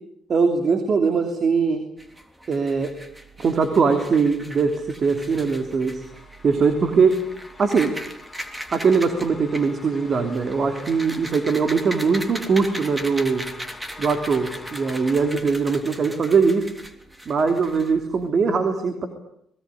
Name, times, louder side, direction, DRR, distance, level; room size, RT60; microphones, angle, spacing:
voice 1, 0.3-1.9 2.5-2.9 3.4-6.0 6.4-7.2 7.6-7.9 8.7-13.5 14.0-16.7 17.2-19.1, right 5 dB, 50° right, 7 dB, 3.1 m, -21 dB
sound 1, 2.0-18.3, equal, 10° right, 3.3 m, -39 dB
sound 2, 5.3-15.3, left 3 dB, 15° left, 7.4 m, -45 dB
26.0 x 21.0 x 9.9 m, 0.75 s
cardioid pair, 90°, 0 cm